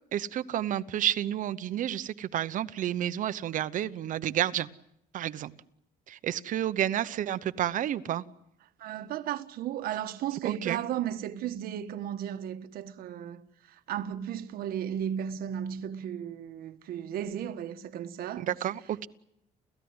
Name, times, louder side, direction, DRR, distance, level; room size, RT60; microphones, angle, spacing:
voice 1, 0.1-4.7 5.1-5.5 6.1-8.2 10.4-10.8 18.4-19.1, right 11 dB, 60° right, 0.9 m, -30 dB
voice 2, 8.8-13.4 13.7-18.5, right 10 dB, 80° right, 1.4 m, -35 dB
30.0 x 15.0 x 9.7 m
cardioid pair, 140°, 15 cm